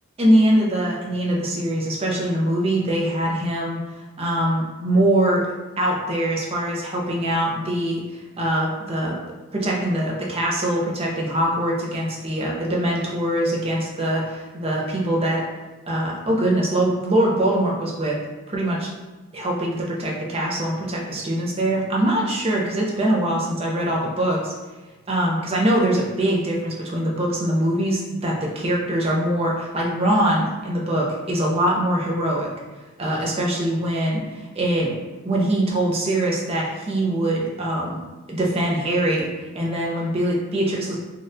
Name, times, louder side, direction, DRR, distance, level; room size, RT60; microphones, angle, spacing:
voice 1, 0.2-3.8 4.2-5.4 5.8-8.0 8.4-9.1 9.5-15.4 15.9-18.2 18.5-18.9 19.3-24.5 25.1-32.5 33.0-34.2 34.6-38.0 38.3-39.3 39.5-41.0, right 1 dB, 25° right, -3 dB, 0.6 m, -22 dB
4.1 x 2.4 x 2.6 m, 1.1 s
head